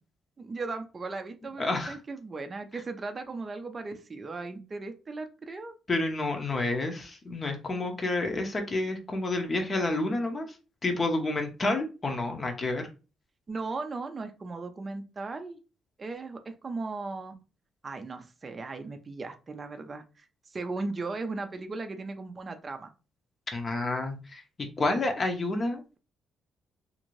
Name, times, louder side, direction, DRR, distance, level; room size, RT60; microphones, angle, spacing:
voice 1, 0.4-5.7 13.5-15.6 16.0-17.3 17.8-22.9, right 3 dB, 35° right, 7 dB, 0.4 m, -37 dB
voice 2, 1.6-2.0 5.9-10.5 10.8-12.9 23.5-26.0, left 2 dB, 35° left, 5 dB, 0.6 m, -29 dB
2.5 x 2.5 x 3.0 m, 0.32 s
cardioid pair, 90°, 0 cm